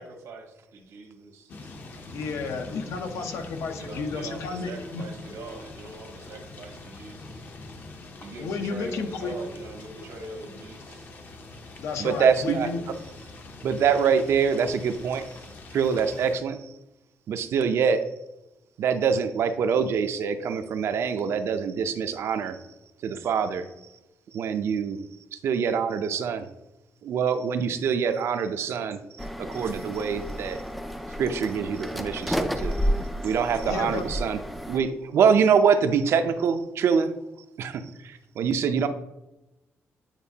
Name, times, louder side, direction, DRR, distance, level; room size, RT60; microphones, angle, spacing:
voice 1, 0.0-1.7 3.7-7.4 8.2-11.1, right 2 dB, 80° right, 3 dB, 1.2 m, -42 dB
sound 1, 1.5-16.4, left 2 dB, 40° left, 0.7 m, -44 dB
voice 2, 2.1-5.0 8.4-9.4 11.8-12.8 33.6-34.1, left 4 dB, 75° left, 5 dB, 0.8 m, -32 dB
voice 3, 12.0-12.7 13.6-15.2 15.7-16.6 17.3-18.0 18.8-22.6 23.0-23.7 24.3-25.0 25.4-26.4 27.0-30.6 31.2-32.8 33.2-34.4 34.7-37.1 37.6-38.9, right 6 dB, 65° right, 9 dB, 0.5 m, -24 dB
sound 2, 29.2-34.8, equal, ahead, 0.3 m, -31 dB
8.9 x 4.3 x 2.8 m, 0.95 s
wide cardioid pair, 170°, 5 cm